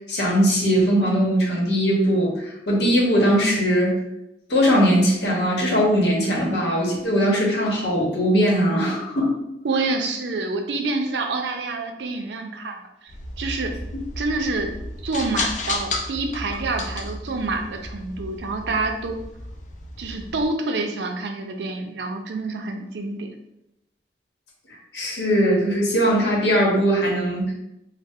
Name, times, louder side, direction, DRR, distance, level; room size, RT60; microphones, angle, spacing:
voice 1, 0.1-4.0 4.5-9.3 24.9-27.5, equal, 75° left, -2 dB, 0.9 m, -20 dB
voice 2, 9.6-12.8 13.4-13.7 14.2-14.7 15.0-19.2 20.0-23.3, right 3 dB, 80° right, 4 dB, 0.4 m, -27 dB
sound 1, 13.1-20.5, left 2 dB, 45° left, 0.4 m, -33 dB
3.1 x 2.1 x 3.5 m, 0.85 s
head